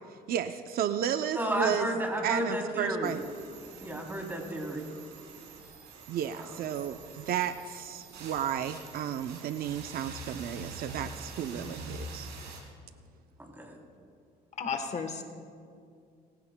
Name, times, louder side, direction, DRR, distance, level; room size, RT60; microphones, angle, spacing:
voice 1, 0.3-1.9 2.2-3.2 6.1-12.3, right 9 dB, 60° right, 9 dB, 0.5 m, -33 dB
voice 2, 1.3-3.2 3.8-4.9 6.4-6.5 11.5-11.7 13.4-13.8, right 1 dB, 10° right, 0 dB, 3.2 m, -32 dB
sound 1, 3.0-12.6, right 2 dB, 80° right, 3.8 m, -45 dB
voice 3, 14.6-15.2, left 5 dB, 40° left, 6 dB, 1.2 m, -33 dB
30.0 x 15.5 x 2.2 m, 2.3 s
cardioid pair, 110°, 17 cm